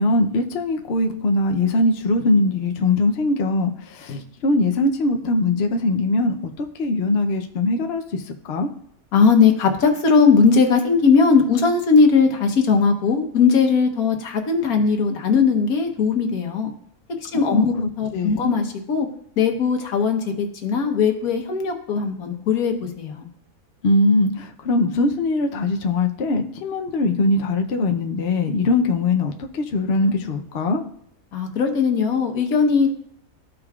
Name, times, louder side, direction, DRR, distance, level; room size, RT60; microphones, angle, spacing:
voice 1, 0.0-8.2 8.5-8.7 17.5-18.6 23.8-30.8, left 2 dB, 55° left, 4 dB, 0.9 m, -21 dB
voice 2, 9.1-16.7 17.2-19.1 19.4-23.3 31.3-32.9, left 5 dB, 80° left, 5 dB, 1.5 m, -19 dB
14.0 x 5.0 x 2.4 m, 0.67 s
omnidirectional pair, 1.5 m